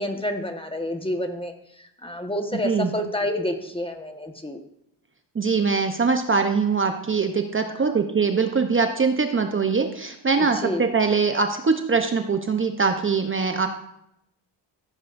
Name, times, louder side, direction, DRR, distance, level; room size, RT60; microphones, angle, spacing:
voice 1, 0.0-1.5 2.0-4.6 7.9-8.0 10.4-10.8, left 1 dB, 10° left, 5 dB, 1.3 m, -28 dB
voice 2, 5.4-13.7, right 5 dB, 30° right, 5 dB, 0.8 m, -22 dB
15.5 x 9.8 x 2.6 m, 0.78 s
cardioid pair, 85°, 44 cm